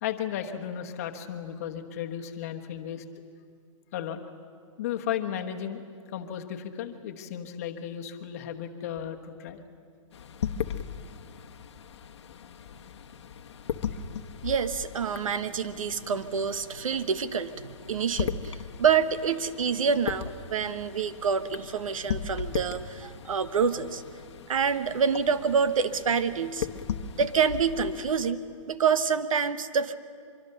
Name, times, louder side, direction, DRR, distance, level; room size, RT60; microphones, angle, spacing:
voice 1, 0.0-3.0 3.9-4.2 4.8-9.6 13.9-14.0, left 9 dB, 25° left, 5 dB, 1.2 m, -35 dB
sound 1, 10.1-28.3, left 8 dB, 55° left, 1.0 m, -38 dB
voice 2, 14.4-24.0 24.5-26.7 27.2-29.9, right 6 dB, 85° right, 12 dB, 1.2 m, -27 dB
24.5 x 24.0 x 6.7 m, 2.2 s
hypercardioid pair, 180°, 17 cm